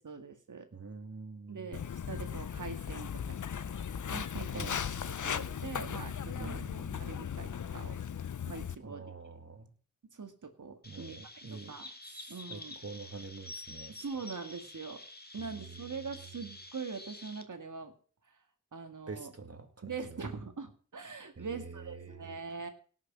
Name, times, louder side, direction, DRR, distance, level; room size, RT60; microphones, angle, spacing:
voice 1, 0.0-0.7 1.5-3.4 4.1-4.8 5.1-8.0 8.5-9.1 10.1-11.9 12.3-12.8 13.9-15.0 15.3-17.9 18.3-18.4 18.7-19.3 19.8-22.7, right 5 dB, 75° right, 6 dB, 2.0 m, -43 dB
voice 2, 0.7-1.7 4.5-4.8 6.3-7.1 8.8-9.7 10.8-11.7 12.0-14.0 15.4-16.0 19.1-20.3 21.4-22.4, right 4 dB, 50° right, 7 dB, 2.2 m, -46 dB
Walk footsteps, 1.7-8.7, left 8 dB, 70° left, 0.7 m, -37 dB
Chirp tweet, 10.8-17.4, left 2 dB, 30° left, 1.8 m, -49 dB
17.5 x 6.6 x 6.0 m, 0.42 s
cardioid pair, 50°, 31 cm